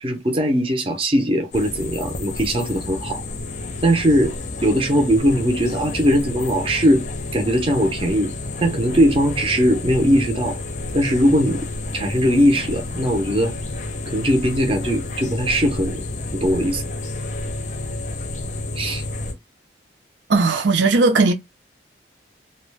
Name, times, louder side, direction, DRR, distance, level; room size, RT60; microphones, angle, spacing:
voice 1, 0.0-3.2 3.8-4.3 4.6-7.1 7.3-8.3 8.6-10.6 10.9-11.6 11.9-13.5 14.1-16.0 16.3-16.8 18.8-19.0, equal, 30° right, 0.6 m, -19 dB
sound 1, 1.5-19.3, left 2 dB, 40° left, 0.5 m, -30 dB
voice 2, 20.3-21.3, right 3 dB, 85° right, 0.6 m, -17 dB
2.4 x 2.1 x 3.2 m
head